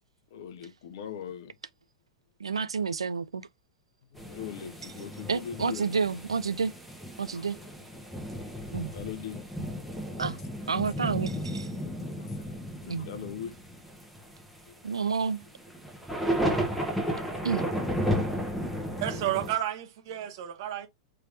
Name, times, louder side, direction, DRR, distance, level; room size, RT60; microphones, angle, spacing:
voice 1, 0.3-1.5 4.1-5.9 7.3-7.4 8.9-9.4 12.2-13.6 19.1-19.5, left 8 dB, 55° left, 0.8 m, -41 dB
voice 2, 2.4-3.5 4.8-4.9 5.3-6.7 7.2-7.6 8.7-8.9 10.2-10.4 10.7-11.7 12.8-13.1 14.8-15.4 17.4-17.6, right 5 dB, 75° right, 0.3 m, -30 dB
sound 1, 4.2-19.5, equal, ahead, 1.1 m, -33 dB
voice 3, 19.0-20.9, right 12 dB, 50° right, 1.0 m, -31 dB
4.5 x 3.3 x 2.6 m
figure-of-eight pair, 95°, 3 cm